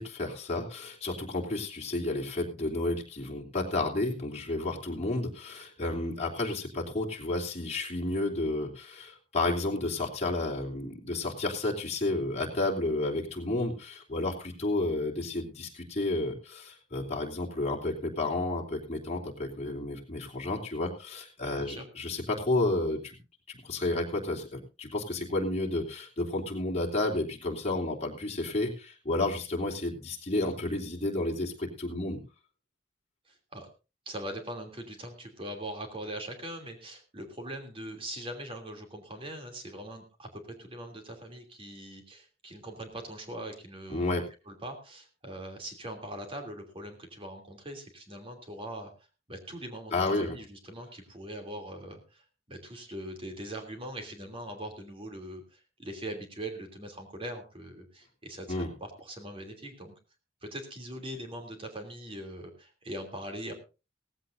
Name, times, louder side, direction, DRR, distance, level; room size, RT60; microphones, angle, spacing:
voice 1, 0.0-23.2 23.5-32.2 43.9-44.2 49.9-50.3 58.5-58.7, left 2 dB, 35° left, -1 dB, 3.1 m, -31 dB
voice 2, 33.3-33.7 34.0-44.2 44.5-48.9 49.3-59.9 60.4-63.5, right 1 dB, 30° right, 5 dB, 3.0 m, -41 dB
17.0 x 15.5 x 2.6 m, 0.30 s
head